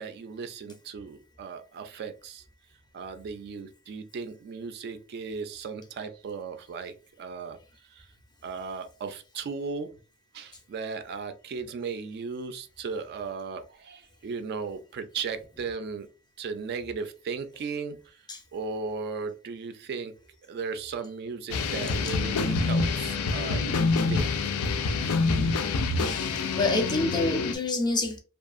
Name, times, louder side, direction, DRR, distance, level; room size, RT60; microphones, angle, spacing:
voice 1, 0.0-2.4 2.9-7.6 7.9-8.1 8.4-9.9 10.3-16.1 16.4-18.2 18.5-20.1 20.5-24.5, right 5 dB, 50° right, 0.3 m, -36 dB
sound 1, 21.5-27.6, left 4 dB, 80° left, 0.4 m, -26 dB
voice 2, 26.0-28.2, left 2 dB, 20° left, 0.4 m, -28 dB
2.6 x 2.4 x 2.4 m
head